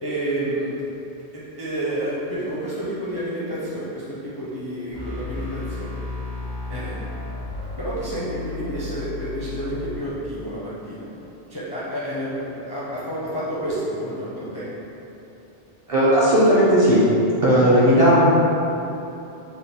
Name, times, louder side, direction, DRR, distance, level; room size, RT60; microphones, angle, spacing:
voice 1, 0.0-0.7 1.3-5.9 6.7-7.1 7.8-11.1 11.5-14.7 17.7-17.8, right 1 dB, 35° left, -9 dB, 0.4 m, -29 dB
sound 1, 4.9-10.0, left 3 dB, 65° right, 1.1 m, -33 dB
voice 2, 15.9-17.0 17.4-18.3, equal, 40° right, -10 dB, 0.5 m, -15 dB
4.1 x 2.1 x 3.5 m, 3.0 s
omnidirectional pair, 1.2 m